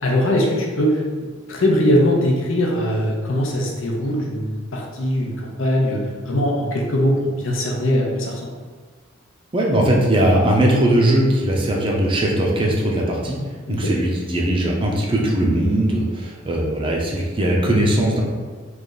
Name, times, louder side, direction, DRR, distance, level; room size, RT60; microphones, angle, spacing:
voice 1, 0.0-8.5 13.7-13.8, equal, 70° left, -1 dB, 0.7 m, -21 dB
voice 2, 9.5-13.4 13.7-18.2, right 1 dB, 25° right, -2 dB, 0.6 m, -19 dB
3.3 x 2.5 x 3.9 m, 1.5 s
head